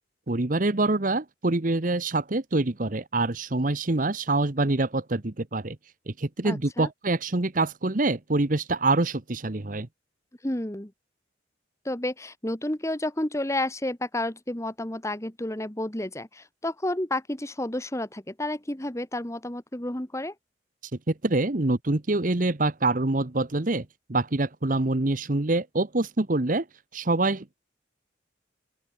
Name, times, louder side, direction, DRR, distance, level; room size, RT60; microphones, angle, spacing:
voice 1, 0.3-5.8 6.1-9.9 21.1-26.6 26.9-27.6, right 2 dB, 45° right, 1.1 m, -25 dB
voice 2, 6.4-6.9 10.4-10.9 11.8-20.3, left 1 dB, 15° left, 1.3 m, -31 dB
open air
head